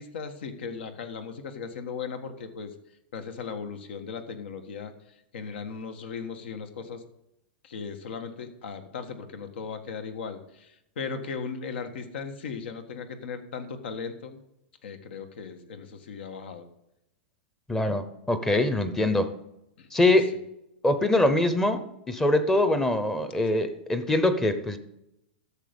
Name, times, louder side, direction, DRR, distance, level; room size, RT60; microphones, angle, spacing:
voice 1, 0.0-2.7 3.1-4.9 5.3-7.0 7.6-14.4 14.8-16.7 19.8-19.9, left 5 dB, 75° left, 8 dB, 1.6 m, -37 dB
voice 2, 17.7-19.3 19.9-20.3 20.8-24.8, left 1 dB, 5° left, 11 dB, 0.8 m, -23 dB
13.5 x 6.9 x 5.3 m, 0.83 s
supercardioid pair, 160°, 6 cm